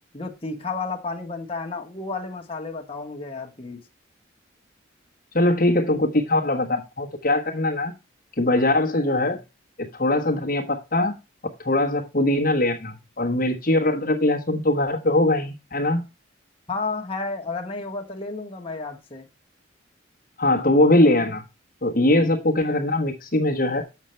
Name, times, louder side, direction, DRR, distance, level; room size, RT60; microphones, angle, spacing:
voice 1, 0.1-3.8 16.7-19.3, left 3 dB, 30° left, 1.4 m, -32 dB
voice 2, 5.3-7.9 8.4-9.4 9.8-11.1 11.6-16.1 20.4-21.4 21.8-23.8, left 1 dB, 45° left, 1.2 m, -21 dB
8.1 x 6.6 x 4.4 m
head